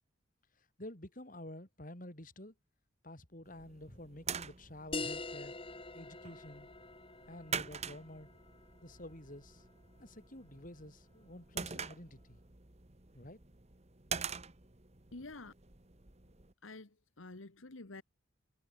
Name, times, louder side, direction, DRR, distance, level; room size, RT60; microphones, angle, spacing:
voice 1, 0.8-2.5 3.0-5.5 5.9-6.7 7.3-8.3 8.8-9.6 10.0-12.4 13.1-13.4, left 1 dB, 40° left, 4.2 m, -50 dB
sound 1, 3.5-16.5, right 6 dB, 30° right, 1.6 m, -46 dB
sound 2, 4.9-10.0, left 3 dB, 25° left, 2.6 m, -45 dB
voice 2, 15.1-15.5 16.6-18.0, left 2 dB, 75° left, 1.6 m, -49 dB
head